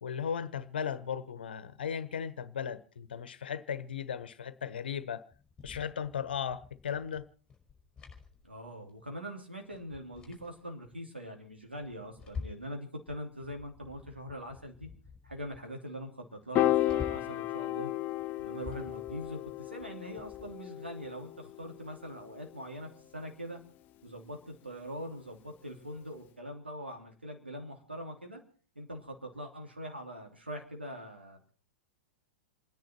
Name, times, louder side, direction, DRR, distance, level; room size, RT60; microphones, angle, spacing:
voice 1, 0.0-5.2 5.6-7.3, left 7 dB, 70° left, 1.2 m, -36 dB
sound 1, 5.3-9.0 9.3-9.4 9.7-11.0 11.5-12.8 13.1-15.7 16.0-16.1 16.4-17.4 18.1-20.6, left 5 dB, 10° left, 4.8 m, -49 dB
voice 2, 8.4-14.9 15.2-17.9 18.4-23.6 24.0-28.4 28.7-31.4, equal, 90° right, 2.9 m, -43 dB
Piano, 16.5-22.9, left 15 dB, 35° left, 0.7 m, -34 dB
28.5 x 10.5 x 4.5 m
figure-of-eight pair, 100°, 6 cm